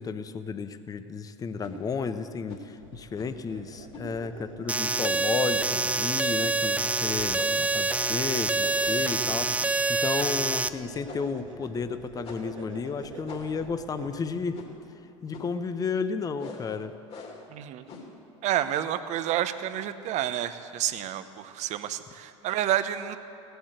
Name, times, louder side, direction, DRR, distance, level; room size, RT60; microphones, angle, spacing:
voice 1, 0.0-14.6 15.2-16.9, left 5 dB, 25° left, 11 dB, 0.7 m, -33 dB
sound 1, 1.6-1.8 2.5-2.7 3.2-3.5 3.9-4.1 4.8-5.1 5.6-5.8 6.1-6.2 6.6-6.9 7.4-8.2 8.7-9.1 9.4-9.6 10.2-10.5 11.1-11.4 12.2-12.6 13.3-13.7 14.5-14.9 15.3-15.6 16.4-16.7 17.1-17.5 17.9-18.2, left 4 dB, 40° left, 2.8 m, -44 dB
sound 2, 2.8-14.5, right 4 dB, 80° right, 1.6 m, -45 dB
sound 3, 4.7-10.7, right 3 dB, 10° right, 0.4 m, -26 dB
voice 2, 17.5-17.9 18.4-23.2, right 11 dB, 45° right, 12 dB, 0.8 m, -29 dB
17.5 x 8.0 x 7.9 m, 2.7 s
hypercardioid pair, 85°, 16 cm